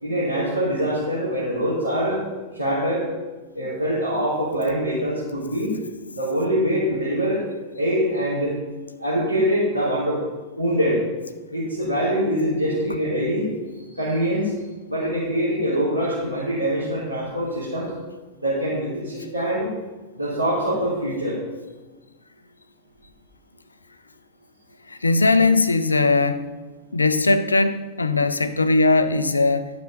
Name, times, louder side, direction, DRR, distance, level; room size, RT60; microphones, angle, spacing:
voice 1, 0.0-2.2 2.5-3.1 3.5-5.8 6.2-7.4 7.7-8.6 9.0-10.2 10.6-11.0 11.5-13.5 13.9-14.5 14.9-17.9 18.4-19.7 20.2-21.4, equal, 80° right, -9 dB, 3.6 m, -24 dB
voice 2, 25.0-26.5 26.9-29.7, left 3 dB, 80° left, 12 dB, 0.6 m, -19 dB
11.5 x 7.2 x 5.6 m, 1.3 s
figure-of-eight pair, 90°, 0 cm